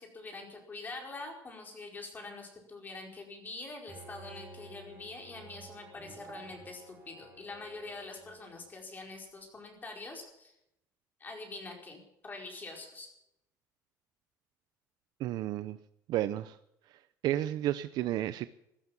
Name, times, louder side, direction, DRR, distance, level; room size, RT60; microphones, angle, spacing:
voice 1, 0.0-10.5 11.2-13.1, left 3 dB, 25° left, 2 dB, 4.8 m, -45 dB
Bowed string instrument, 3.9-8.6, right 2 dB, 25° right, 5.9 m, -51 dB
voice 2, 15.2-15.8 16.1-16.6 17.2-18.5, right 13 dB, 70° right, 13 dB, 0.6 m, -31 dB
15.0 x 12.0 x 7.1 m, 0.81 s
cardioid pair, 135°, 7 cm